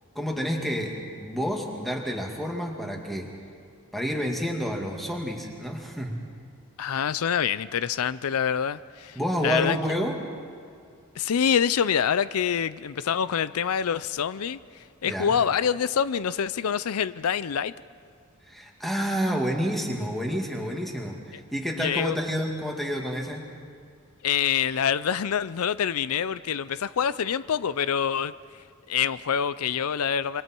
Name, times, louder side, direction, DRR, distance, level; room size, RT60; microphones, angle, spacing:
voice 1, 0.1-3.3 3.9-6.1 9.2-10.2 15.0-15.3 18.4-23.5, equal, ahead, 2.3 m, -29 dB
voice 2, 6.8-9.8 11.2-14.6 15.0-17.7 21.8-22.1 24.2-28.3 28.9-30.4, left 8 dB, 85° left, 0.5 m, -26 dB
27.0 x 25.0 x 4.6 m
head